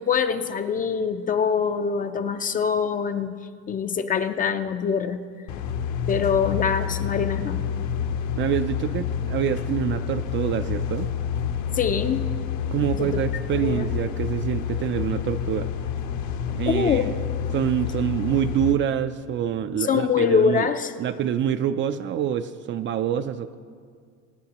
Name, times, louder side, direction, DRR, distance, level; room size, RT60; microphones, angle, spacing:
voice 1, 0.0-3.3 3.7-5.3 6.1-7.7 11.7-12.3 13.0-13.2 13.5-13.8 16.7-17.1 19.9-20.9, left 6 dB, 25° left, 9 dB, 0.5 m, -24 dB
sound 1, 5.5-18.7, left 8 dB, 60° left, 0.9 m, -28 dB
voice 2, 8.4-11.1 12.7-15.7 16.5-17.0 17.5-20.7 21.0-23.6, right 9 dB, 35° right, 10 dB, 0.4 m, -26 dB
25.0 x 9.3 x 2.9 m, 2.1 s
cardioid pair, 140°, 34 cm